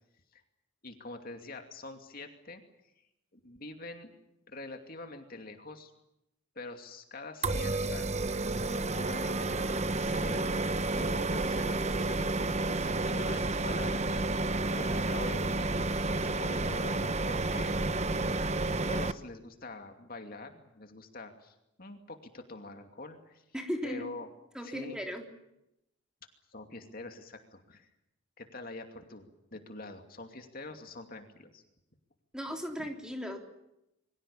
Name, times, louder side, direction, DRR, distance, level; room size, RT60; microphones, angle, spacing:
voice 1, 0.8-2.6 3.3-4.1 4.5-5.9 6.5-8.1 8.7-14.3 14.7-17.8 18.9-23.4 23.8-24.3 24.6-25.0 26.5-27.9 28.4-31.6 32.8-32.9, left 2 dB, 45° left, 5 dB, 2.6 m, -45 dB
sound 1, 7.4-19.1, right 2 dB, 30° right, 1.0 m, -30 dB
voice 2, 23.5-24.1 24.5-25.3 32.3-33.4, equal, 5° right, 3 dB, 3.5 m, -36 dB
28.0 x 24.0 x 7.1 m, 0.85 s
head